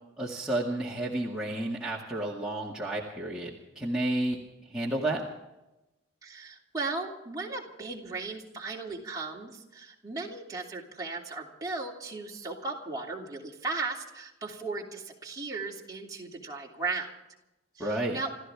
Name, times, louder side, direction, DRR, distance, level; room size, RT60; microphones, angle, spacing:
voice 1, 0.2-4.4 4.7-5.2 17.8-18.2, right 1 dB, 5° right, -6 dB, 2.1 m, -31 dB
voice 2, 6.2-17.1 17.7-18.3, right 3 dB, 20° right, -3 dB, 2.9 m, -36 dB
28.5 x 14.5 x 3.6 m, 0.95 s
head